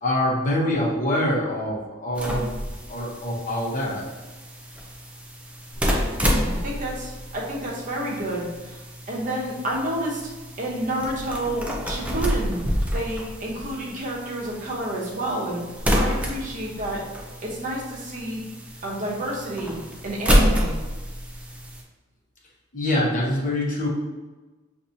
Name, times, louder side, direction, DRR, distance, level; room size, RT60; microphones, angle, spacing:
voice 1, 0.0-2.5 2.9-4.0 22.7-23.9, left 1 dB, 40° left, -3 dB, 1.0 m, -25 dB
sound 1, 2.1-21.8, equal, 5° right, 0.5 m, -28 dB
voice 2, 6.3-8.8 9.1-10.2 10.6-12.6 12.9-15.6 15.9-17.0 17.4-18.4 18.8-19.8 20.0-20.8, right 1 dB, 40° right, -3 dB, 1.0 m, -29 dB
6.4 x 2.6 x 2.8 m, 1.2 s
head